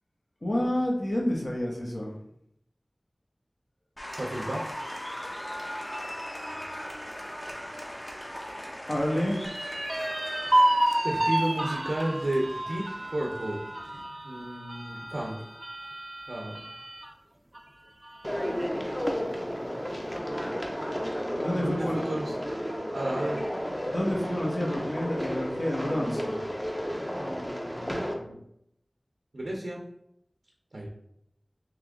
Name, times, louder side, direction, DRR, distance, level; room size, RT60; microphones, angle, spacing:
voice 1, 0.4-2.1 8.9-9.4 21.4-22.0 23.9-26.4, left 1 dB, 60° left, -3 dB, 1.2 m, -29 dB
Applause, 4.0-14.0, equal, 30° left, 0.9 m, -40 dB
voice 2, 4.2-4.6 11.0-13.6 14.2-15.3 16.3-16.6 21.5-22.3 22.9-23.4 27.2-28.4 29.3-29.8 30.7-30.9, right 1 dB, 85° right, -1 dB, 0.6 m, -32 dB
sound 1, 9.4-17.1 17.5-17.6 18.0-18.7, right 1 dB, 35° right, 0.4 m, -30 dB
sound 2, 18.2-28.1, equal, 10° left, 0.7 m, -32 dB
3.6 x 3.0 x 3.6 m, 0.75 s
wide cardioid pair, 45°, 0 cm